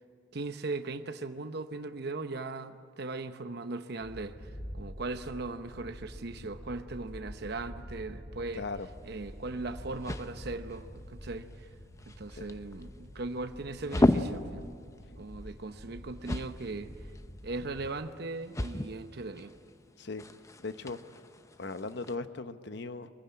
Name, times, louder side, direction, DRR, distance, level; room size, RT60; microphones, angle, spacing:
voice 1, 0.3-8.7 9.0-11.5 12.1-14.7 15.2-16.9 17.4-19.6, right 3 dB, 60° right, 0.9 m, -38 dB
sound 1, 4.0-17.9, equal, 80° left, 5.1 m, -47 dB
voice 2, 8.5-8.9 12.3-12.4 20.0-20.2 20.6-21.2 21.6-23.1, left 3 dB, 65° left, 0.9 m, -38 dB
sound 2, 8.7-22.1, left 1 dB, 15° left, 0.7 m, -36 dB
24.0 x 15.5 x 9.6 m
head